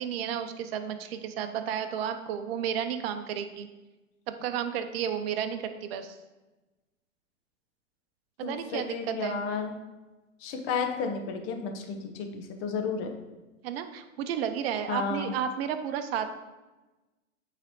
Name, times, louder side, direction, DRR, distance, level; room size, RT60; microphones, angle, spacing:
voice 1, 0.0-3.7 4.3-6.2 8.4-9.4 13.6-16.3, right 8 dB, 50° right, 8 dB, 0.7 m, -32 dB
voice 2, 8.4-9.7 10.4-13.1 14.9-15.3, left 5 dB, 35° left, 5 dB, 0.9 m, -32 dB
8.4 x 4.0 x 3.1 m, 1.1 s
hypercardioid pair, 115°, 40 cm